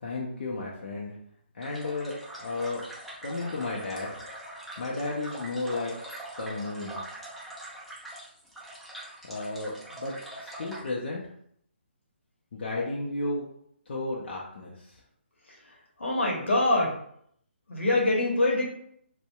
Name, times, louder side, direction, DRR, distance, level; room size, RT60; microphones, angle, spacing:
voice 1, 0.0-1.1 1.5-2.8 3.2-4.2 4.8-5.9 6.4-7.0 9.3-10.1 10.4-11.2 12.5-13.4 13.9-15.0, left 2 dB, 55° left, -4 dB, 0.5 m, -33 dB
sound 1, 1.6-10.9, right 1 dB, ahead, 0.4 m, -43 dB
voice 2, 16.0-16.9 17.7-18.7, left 2 dB, 80° left, -2 dB, 0.8 m, -24 dB
2.6 x 2.1 x 2.2 m, 0.68 s
figure-of-eight pair, 145°, 6 cm